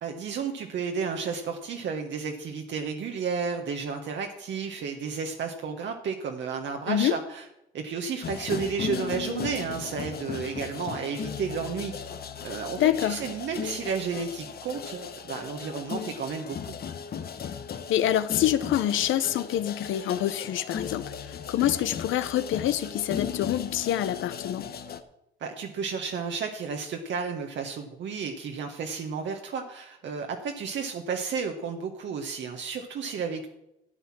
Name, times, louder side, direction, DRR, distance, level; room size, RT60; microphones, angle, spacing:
voice 1, 0.0-7.4 7.7-11.9 12.4-16.7 25.4-33.5, right 5 dB, 65° right, 3 dB, 1.3 m, -32 dB
sound 1, 8.2-25.0, left 7 dB, 50° left, 1.0 m, -37 dB
voice 2, 12.8-13.2 17.9-24.7, left 11 dB, 80° left, 14 dB, 0.8 m, -26 dB
12.5 x 8.0 x 6.0 m, 0.86 s
cardioid pair, 90°, 20 cm